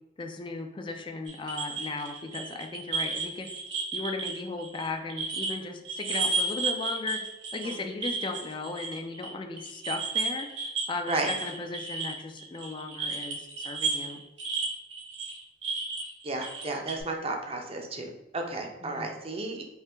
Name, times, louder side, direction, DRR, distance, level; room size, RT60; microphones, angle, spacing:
voice 1, 0.2-3.5 3.9-7.2 7.5-10.5 10.9-14.2 18.8-19.1, left 3 dB, 25° left, 5 dB, 0.4 m, -36 dB
sound 1, 1.3-5.6 5.8-9.3 9.6-17.0, right 4 dB, 80° right, 0.8 m, -33 dB
voice 2, 16.2-19.6, right 2 dB, 30° right, 2 dB, 0.6 m, -33 dB
4.5 x 2.8 x 3.3 m, 0.99 s
head